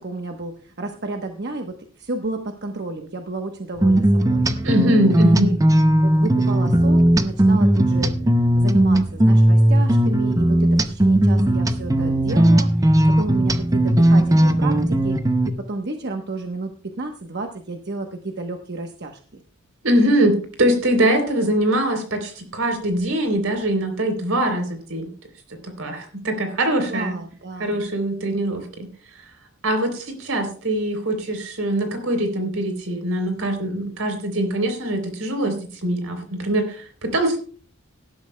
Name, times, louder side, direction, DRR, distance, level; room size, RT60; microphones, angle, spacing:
voice 1, 0.0-4.4 5.1-5.5 6.0-8.1 8.6-15.2 15.6-16.7 17.0-19.4 26.9-27.9, right 2 dB, 50° right, 4 dB, 1.0 m, -31 dB
sound 1, 3.8-15.5, right 1 dB, 15° right, 0.6 m, -17 dB
voice 2, 4.6-5.5 19.8-25.1 25.6-27.2 27.6-28.7 29.6-35.6 35.8-37.4, right 1 dB, 75° right, 6 dB, 3.5 m, -22 dB
18.0 x 12.0 x 2.2 m, 0.41 s
head